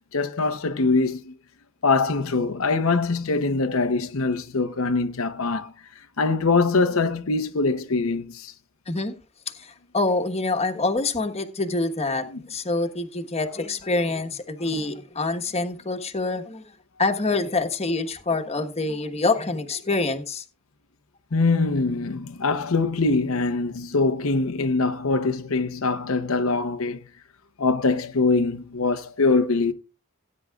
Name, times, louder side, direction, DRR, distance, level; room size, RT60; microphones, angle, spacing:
voice 1, 0.1-1.3 1.8-5.7 6.2-8.5 12.2-12.4 21.3-27.0 27.6-29.7, left 3 dB, 80° left, 0.8 m, -23 dB
voice 2, 8.9-9.2 9.6-9.7 9.9-16.6 17.0-20.4, left 3 dB, 30° left, 1.3 m, -26 dB
18.0 x 9.6 x 2.4 m
head